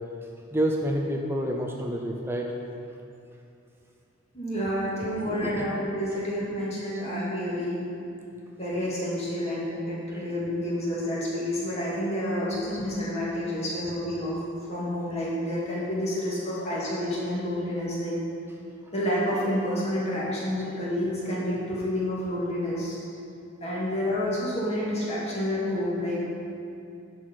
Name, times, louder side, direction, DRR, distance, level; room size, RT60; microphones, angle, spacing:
voice 1, 0.5-2.5 5.2-5.7, right 1 dB, 10° right, 0 dB, 0.5 m, -28 dB
voice 2, 4.3-7.8 8.6-14.4 14.7-18.1 18.9-23.0 23.6-26.2, equal, 30° left, -7 dB, 2.2 m, -29 dB
11.0 x 4.5 x 6.1 m, 2.5 s
head